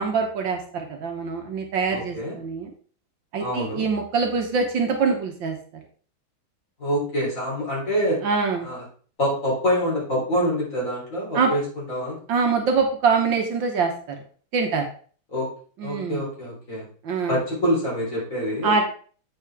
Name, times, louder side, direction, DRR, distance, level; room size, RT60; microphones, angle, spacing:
voice 1, 0.0-2.7 3.3-5.6 8.2-8.7 11.3-11.5 12.3-14.2 14.5-14.9 15.8-16.2 17.0-17.4 18.6-18.9, right 5 dB, 65° right, 3 dB, 1.7 m, -24 dB
voice 2, 1.9-2.4 3.4-3.9 6.8-8.2 8.6-8.8 9.2-12.2 15.3-15.5 15.8-16.9 17.3-18.8, equal, 35° left, -5 dB, 3.7 m, -26 dB
8.5 x 5.4 x 3.5 m, 0.43 s
omnidirectional pair, 2.3 m